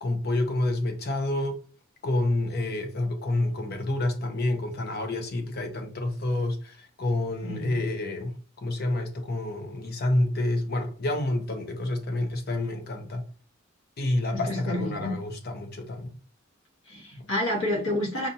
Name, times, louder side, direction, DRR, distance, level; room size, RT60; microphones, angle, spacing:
voice 1, 0.0-1.6 2.0-13.2 14.0-16.1 17.2-17.3, left 1 dB, 50° left, 0.8 m, -28 dB
voice 2, 14.3-15.2 16.9-18.3, left 1 dB, 75° left, 1.2 m, -29 dB
5.5 x 2.5 x 2.6 m
head